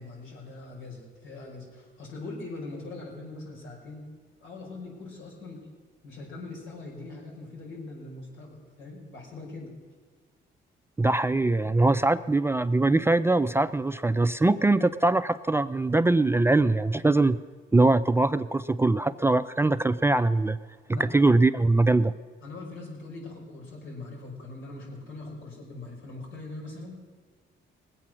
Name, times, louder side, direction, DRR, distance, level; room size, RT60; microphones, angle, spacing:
voice 1, 0.0-4.0 4.4-5.6 6.0-9.7 20.9-21.1 22.4-27.2, left 2 dB, 75° left, -2 dB, 5.0 m, -41 dB
voice 2, 11.0-17.4 17.7-20.6 21.1-22.1, right 2 dB, 10° right, 12 dB, 0.4 m, -22 dB
20.0 x 8.4 x 6.2 m, 1.5 s
cardioid pair, 90°, 20 cm